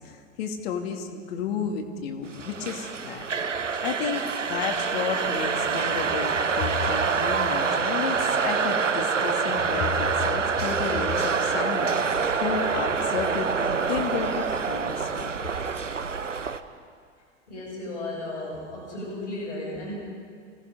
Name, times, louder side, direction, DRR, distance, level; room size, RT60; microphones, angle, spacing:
voice 1, 0.4-3.2 3.8-15.3, left 6 dB, 55° left, 4 dB, 2.6 m, -32 dB
sound 1, 2.3-16.6, right 5 dB, 85° right, 1.0 m, -26 dB
voice 2, 17.5-19.9, left 2 dB, 75° left, -3 dB, 7.7 m, -34 dB
27.5 x 18.0 x 5.3 m, 2.1 s
figure-of-eight pair, 85°, 36 cm